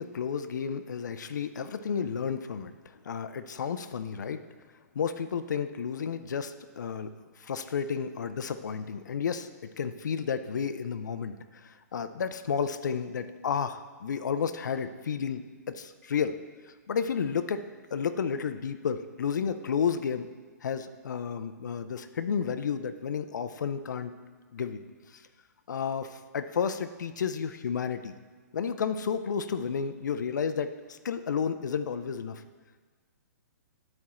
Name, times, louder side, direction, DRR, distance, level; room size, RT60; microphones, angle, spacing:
voice 1, 0.0-4.4 4.9-7.1 7.4-15.4 15.7-17.6 17.9-20.3 20.6-24.1 24.5-24.8 25.1-25.2 25.7-28.1 28.5-32.4, left 6 dB, 90° left, 10 dB, 0.5 m, -32 dB
9.6 x 4.4 x 4.2 m, 1.5 s
hypercardioid pair, 170°, 10 cm